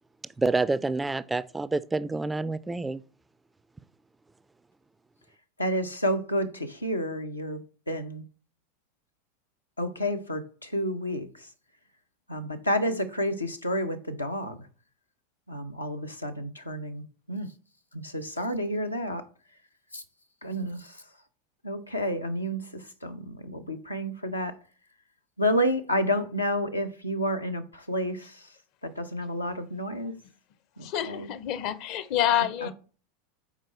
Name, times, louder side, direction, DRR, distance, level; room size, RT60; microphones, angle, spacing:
voice 1, 0.4-3.0, right 3 dB, 10° right, 0.3 m, -28 dB
voice 2, 5.6-7.6 7.9-8.2 9.8-11.5 12.3-14.7 15.5-17.5 17.9-19.3 19.9-20.0 20.4-21.0 21.6-24.6 25.4-28.5 28.8-30.1 30.8-31.3 32.6-32.7, equal, 85° left, 0.7 m, -30 dB
voice 3, 30.8-32.7, left 11 dB, 45° left, 0.7 m, -27 dB
5.9 x 4.6 x 4.3 m
figure-of-eight pair, 85°, 0 cm